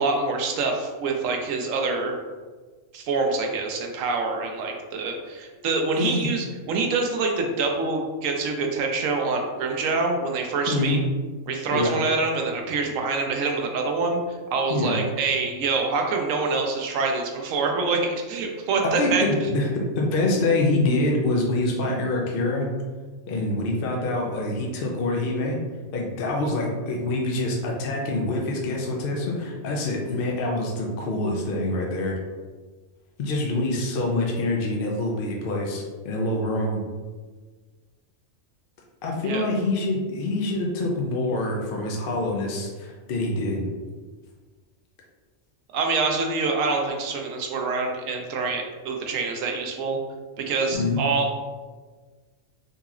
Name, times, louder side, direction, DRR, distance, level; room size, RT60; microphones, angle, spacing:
voice 1, 0.0-2.1 2.9-11.0 11.5-14.2 14.5-19.2 39.2-39.5 45.7-50.0 50.4-51.4, right 4 dB, 90° right, 2 dB, 1.0 m, -25 dB
voice 2, 6.0-6.3 10.7-11.0 11.7-11.9 14.7-15.0 19.0-22.7 23.3-25.6 25.9-32.2 33.2-36.8 39.0-43.7 50.7-51.0, left 2 dB, 55° left, -1 dB, 0.7 m, -25 dB
3.9 x 2.9 x 2.4 m, 1.4 s
omnidirectional pair, 1.3 m